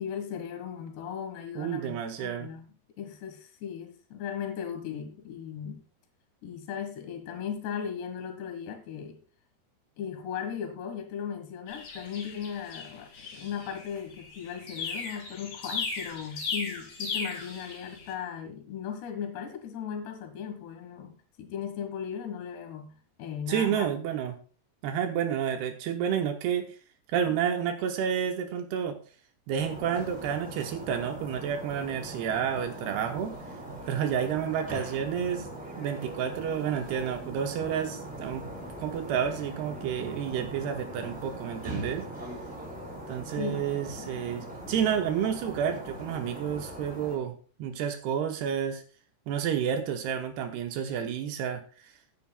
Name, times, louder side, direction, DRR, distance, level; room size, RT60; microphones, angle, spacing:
voice 1, 0.0-2.7 3.0-5.8 6.4-9.2 10.0-21.1 21.4-23.9 43.4-43.7 44.0-44.4, left 8 dB, 80° left, 6 dB, 3.7 m, -37 dB
voice 2, 1.6-2.5 23.5-24.3 24.8-26.7 27.1-29.0 29.5-33.4 33.9-35.5 35.8-38.5 38.8-42.1 43.1-47.3 47.6-48.8 49.3-51.6, right 8 dB, 80° right, 5 dB, 2.9 m, -30 dB
sound 1, 11.7-18.1, left 4 dB, 55° left, 3.6 m, -37 dB
sound 2, 29.6-47.2, right 1 dB, ahead, 4.6 m, -41 dB
15.5 x 9.6 x 2.3 m, 0.37 s
omnidirectional pair, 4.8 m